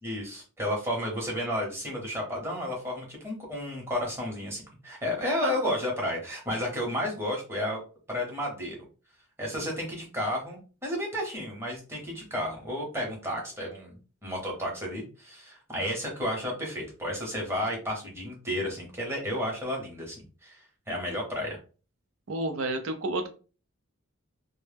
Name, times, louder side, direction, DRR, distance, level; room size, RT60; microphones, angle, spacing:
voice 1, 0.0-7.8 8.1-8.8 9.4-13.9 14.2-21.6, left 1 dB, 10° right, -1 dB, 0.7 m, -32 dB
voice 2, 22.3-23.3, right 2 dB, 75° right, 7 dB, 0.5 m, -30 dB
2.0 x 2.0 x 3.3 m, 0.36 s
head